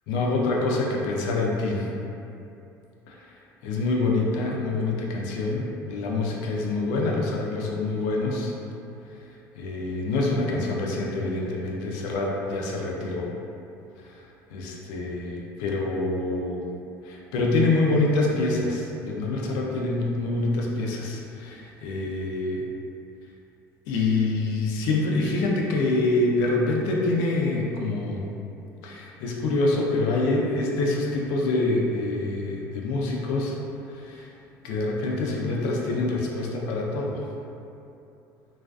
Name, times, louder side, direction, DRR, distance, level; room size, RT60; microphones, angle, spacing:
voice 1, 0.1-1.9 3.1-3.2 3.6-8.5 9.6-13.4 14.5-16.6 17.0-22.6 23.9-28.2 28.8-33.6 33.9-34.3 34.6-37.2, left 2 dB, 75° left, -2 dB, 0.4 m, -26 dB
2.3 x 2.3 x 2.2 m, 2.7 s
cardioid pair, 180°, 7 cm